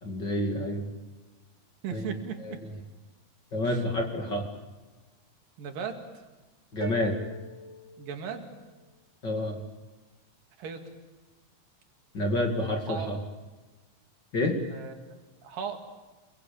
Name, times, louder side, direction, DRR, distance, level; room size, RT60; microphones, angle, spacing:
voice 1, 0.0-0.9 1.9-2.1 2.4-2.5 3.5-4.4 6.7-7.1 9.2-9.6 12.1-13.2 14.3-14.6, left 1 dB, 35° left, 2 dB, 2.8 m, -28 dB
voice 2, 1.8-2.6 3.7-3.8 5.6-6.0 8.0-8.5 10.6-10.8 12.9-13.1 14.7-15.0 15.4-15.8, right 7 dB, 80° right, 5 dB, 4.1 m, -36 dB
sound 1, 6.8-8.8, right 1 dB, 45° right, 3.1 m, -42 dB
27.5 x 22.5 x 9.1 m, 1.2 s
omnidirectional pair, 3.9 m